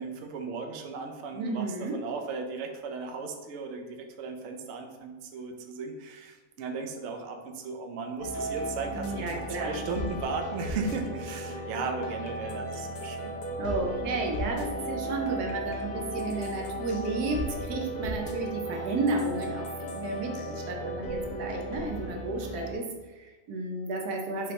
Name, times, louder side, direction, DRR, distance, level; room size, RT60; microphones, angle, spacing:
voice 1, 0.0-13.3, right 4 dB, 65° right, 4 dB, 0.8 m, -36 dB
voice 2, 1.3-2.0 8.9-9.8 13.6-19.7 19.9-24.5, right 2 dB, 85° right, 2 dB, 1.3 m, -32 dB
sound 1, 8.2-22.7, equal, 70° left, 1.2 m, -35 dB
5.3 x 2.9 x 3.2 m, 1.2 s
omnidirectional pair, 1.6 m